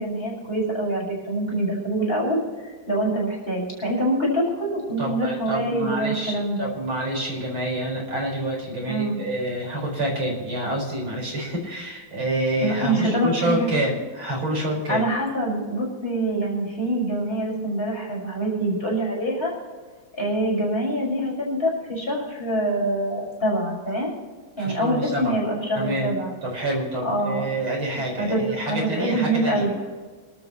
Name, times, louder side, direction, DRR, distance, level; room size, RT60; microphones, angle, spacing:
voice 1, 0.0-6.7 8.8-9.2 12.6-13.7 14.9-19.5 20.2-24.2 24.6-26.3 27.0-27.5 28.2-28.4 28.7-29.7, right 1 dB, 25° left, -4 dB, 6.0 m, -25 dB
voice 2, 5.0-15.0 24.6-25.3 25.7-26.1 26.4-29.6, right 1 dB, 85° right, -1 dB, 6.0 m, -27 dB
27.5 x 12.5 x 3.1 m, 1.4 s
omnidirectional pair, 2.2 m